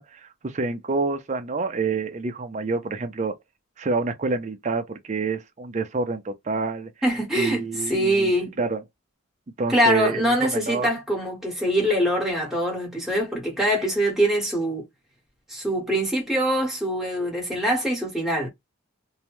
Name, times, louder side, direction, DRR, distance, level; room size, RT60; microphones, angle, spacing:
voice 1, 0.0-3.4 3.8-6.9 7.3-8.3 8.6-8.8 9.6-10.9, right 4 dB, 35° right, 0.4 m, -27 dB
voice 2, 7.0-8.5 9.7-14.9 15.5-18.5, equal, ahead, 1.0 m, -23 dB
2.7 x 2.1 x 3.0 m
head